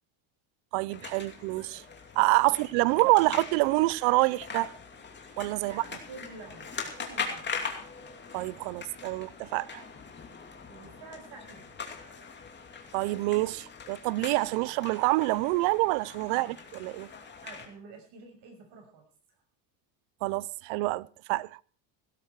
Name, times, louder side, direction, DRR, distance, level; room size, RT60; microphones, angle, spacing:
voice 1, 0.7-1.8 2.2-4.7 5.4-5.8 8.3-9.8 12.9-17.1 20.2-21.6, right 21 dB, 80° right, 0.7 m, -27 dB
sound 1, 0.9-17.7, left 5 dB, 20° left, 2.7 m, -42 dB
voice 2, 2.9-3.3 5.6-7.5 10.7-11.8 16.3-16.6 17.4-19.0, right 4 dB, 55° right, 6.5 m, -48 dB
17.5 x 12.5 x 4.7 m
cardioid pair, 150°, 50 cm